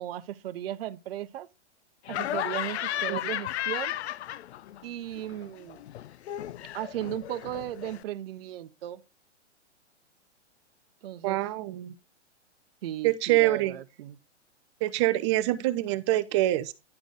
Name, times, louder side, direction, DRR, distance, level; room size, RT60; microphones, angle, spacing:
voice 1, 0.0-1.5 2.1-3.9 4.8-5.8 6.7-9.0 11.0-11.4 12.8-14.2, right 12 dB, 55° right, 0.8 m, -36 dB
Laughter, 2.1-4.8 5.1-8.0, left 12 dB, 65° left, 0.5 m, -34 dB
voice 2, 11.2-11.9 13.0-13.8 14.8-16.7, right 16 dB, 25° right, 0.5 m, -25 dB
10.5 x 4.0 x 4.8 m
hypercardioid pair, 135°, 36 cm